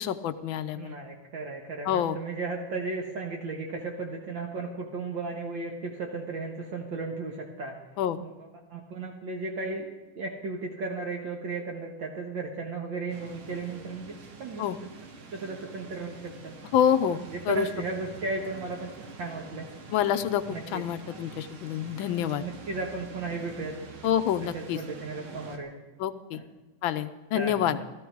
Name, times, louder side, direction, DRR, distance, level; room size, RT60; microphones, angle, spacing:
voice 1, 0.0-1.0 1.9-2.2 8.0-8.2 14.6-14.8 16.7-17.7 19.9-22.4 24.0-24.8 26.0-26.4 26.8-27.8, left 9 dB, 75° left, 11 dB, 1.4 m, -27 dB
voice 2, 0.7-7.8 8.2-9.9 10.2-15.0 15.3-16.6 17.3-19.7 20.5-20.8 22.4-23.7 24.5-25.7 26.3-26.4 27.3-27.8, right 3 dB, 65° right, 0 dB, 2.1 m, -35 dB
sound 1, 13.1-25.6, right 4 dB, 80° right, 2.2 m, -46 dB
15.5 x 13.5 x 4.6 m, 1.1 s
omnidirectional pair, 2.3 m